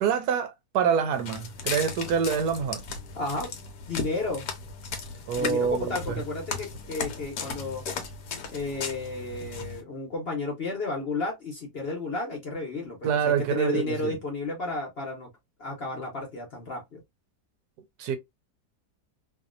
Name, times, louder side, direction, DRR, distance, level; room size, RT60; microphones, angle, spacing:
voice 1, 0.0-2.8 5.3-6.2 13.0-14.2 18.0-18.2, right 7 dB, 75° right, 1.1 m, -26 dB
Walk footsteps, 1.1-9.8, left 5 dB, 70° left, 1.2 m, -36 dB
voice 2, 3.1-3.5 3.9-4.5 5.4-7.8 8.5-15.3 15.6-17.0, left 3 dB, 45° left, 1.0 m, -32 dB
2.9 x 2.6 x 2.5 m
omnidirectional pair, 1.8 m